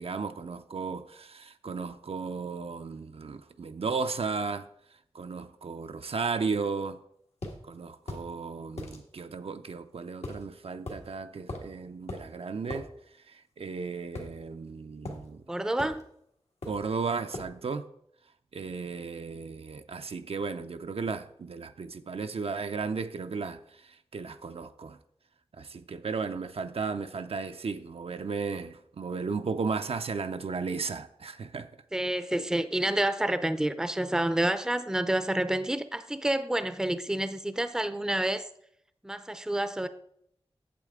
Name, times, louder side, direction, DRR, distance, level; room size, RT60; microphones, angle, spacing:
voice 1, 0.0-4.7 5.1-7.0 7.7-12.9 13.3-15.4 16.6-17.9 18.5-25.0 25.6-31.7, right 4 dB, 65° right, 0.4 m, -35 dB
sound 1, 7.4-7.6 8.1-8.3 8.8-9.0 10.2-10.4 10.9-11.0 11.5-11.7 12.1-12.3 12.7-12.9 14.1-14.7 15.0-15.2 15.8-16.0 16.6-16.9 17.3-17.5, left 2 dB, 85° left, 1.5 m, -39 dB
voice 2, 15.5-16.0 31.9-38.5 39.0-39.9, right 1 dB, 5° right, 0.5 m, -28 dB
8.4 x 7.4 x 3.6 m
wide cardioid pair, 80°, 11 cm